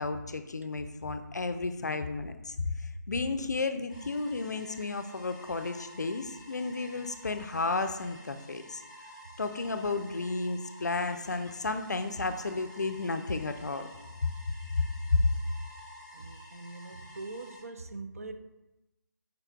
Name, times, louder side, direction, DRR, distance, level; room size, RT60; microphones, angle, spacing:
voice 1, 0.0-2.6 3.1-8.8 9.4-13.9 14.2-14.3 14.8-14.9 15.1-15.2, left 3 dB, 60° left, 9 dB, 0.4 m, -32 dB
sound 1, 3.9-17.6, left 1 dB, ahead, 0.7 m, -51 dB
voice 2, 16.1-18.3, right 3 dB, 45° right, 8 dB, 0.4 m, -42 dB
5.0 x 4.3 x 2.3 m, 0.97 s
figure-of-eight pair, 155°, 11 cm